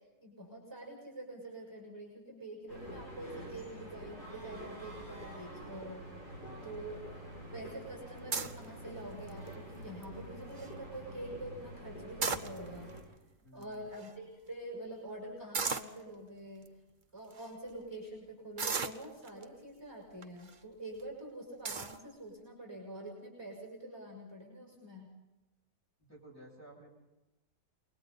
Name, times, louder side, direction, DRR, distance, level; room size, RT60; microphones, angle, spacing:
voice 1, 0.0-6.1 6.6-7.0 7.5-12.9 13.5-16.8 17.1-25.1, right 1 dB, 15° right, -1 dB, 6.4 m, -46 dB
sound 1, 2.7-13.0, right 1 dB, 65° left, 7.5 m, -47 dB
voice 2, 6.3-6.8 13.4-13.9 26.0-26.9, right 1 dB, 10° left, -4 dB, 7.4 m, -55 dB
sound 2, 8.3-8.6 9.3-9.6 10.0-10.1 10.3-10.7 12.0-12.9 13.6-13.7 13.9-14.1 15.5-16.0 16.7-16.8 17.3-17.5 18.6-19.4 20.2-20.5 21.0-21.1 21.6-22.0, right 5 dB, 35° right, 1.0 m, -35 dB
29.0 x 22.5 x 4.1 m, 1.0 s
omnidirectional pair, 1.8 m